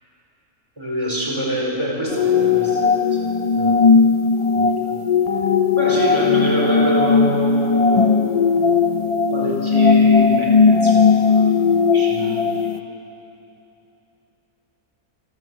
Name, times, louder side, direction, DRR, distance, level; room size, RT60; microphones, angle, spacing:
voice 1, 0.8-3.3 3.5-3.8 4.5-5.0 5.7-8.8 9.3-12.7, equal, 20° right, -2 dB, 4.5 m, -25 dB
sound 1, 2.1-12.8, left 5 dB, 40° left, 0.5 m, -17 dB
27.5 x 14.0 x 7.9 m, 3.0 s
omnidirectional pair, 1.4 m